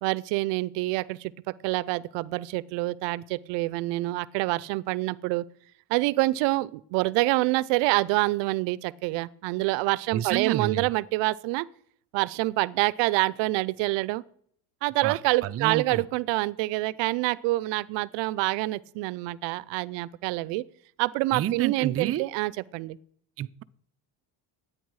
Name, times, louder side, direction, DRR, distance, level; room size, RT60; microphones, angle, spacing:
voice 1, 0.0-1.3 1.6-5.4 5.9-11.7 12.1-14.2 14.8-20.6 21.0-23.0, right 20 dB, 80° right, 0.6 m, -26 dB
voice 2, 10.1-10.9 15.0-16.0 21.3-22.2 23.4-23.6, right 11 dB, 35° right, 0.4 m, -30 dB
12.0 x 9.0 x 4.7 m
cardioid pair, 100°, 43 cm